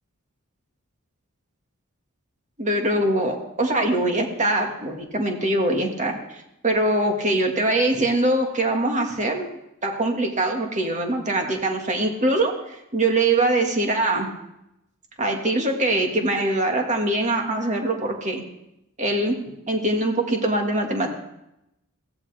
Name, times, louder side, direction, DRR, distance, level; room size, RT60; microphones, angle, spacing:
voice 1, 2.6-6.2 6.6-9.5 9.8-14.3 15.2-18.4 19.0-19.4 19.7-21.2, right 2 dB, 35° right, 3 dB, 1.9 m, -23 dB
16.0 x 15.5 x 3.5 m, 0.85 s
head